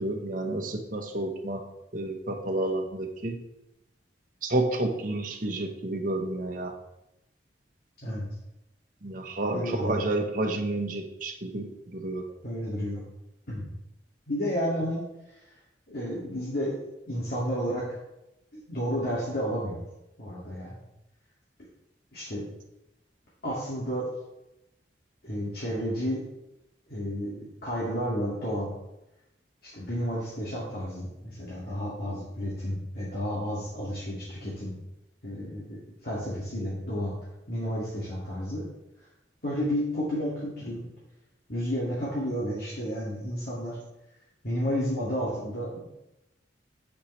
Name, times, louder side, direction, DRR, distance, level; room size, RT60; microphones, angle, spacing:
voice 1, 0.0-1.6 1.9-3.4 4.4-6.7 9.0-12.3, right 2 dB, 50° right, 3 dB, 1.2 m, -30 dB
voice 2, 9.5-10.0 12.4-13.0 13.5-13.7 14.3-15.0 15.9-17.8 18.5-19.8 20.2-20.8 22.1-22.5 23.4-24.1 25.2-26.2 26.9-28.7 29.6-34.7 35.2-37.1 37.5-38.6 39.4-40.8 41.5-43.8 44.4-45.8, equal, 60° left, -7 dB, 2.4 m, -31 dB
8.9 x 8.3 x 3.3 m, 0.89 s
head